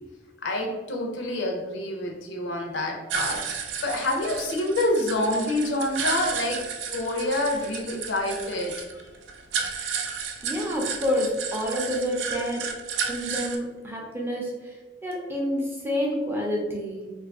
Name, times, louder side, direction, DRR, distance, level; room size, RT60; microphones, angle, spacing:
voice 1, 0.4-3.5 3.8-6.6 6.9-9.0, left 1 dB, 70° left, 2 dB, 0.5 m, -27 dB
sound 1, 3.1-13.6, right 6 dB, 70° right, 0.4 m, -33 dB
voice 2, 10.4-12.7 13.1-14.7 15.0-17.1, equal, 10° right, -2 dB, 0.5 m, -28 dB
2.6 x 2.4 x 3.5 m, 1.2 s
head